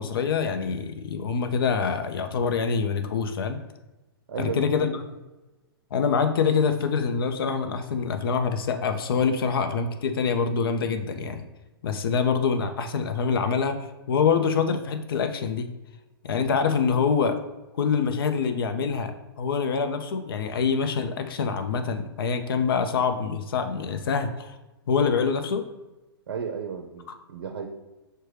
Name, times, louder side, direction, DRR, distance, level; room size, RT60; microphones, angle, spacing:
voice 1, 0.0-3.6 4.4-4.9 5.9-11.4 11.8-15.7 16.2-17.4 17.8-19.1 19.4-24.6 24.9-25.6, left 5 dB, 65° left, 8 dB, 0.5 m, -25 dB
voice 2, 4.3-4.9 26.3-27.7, right 6 dB, 70° right, 3 dB, 0.5 m, -33 dB
6.4 x 2.2 x 3.2 m, 1.1 s
hypercardioid pair, 120°, 13 cm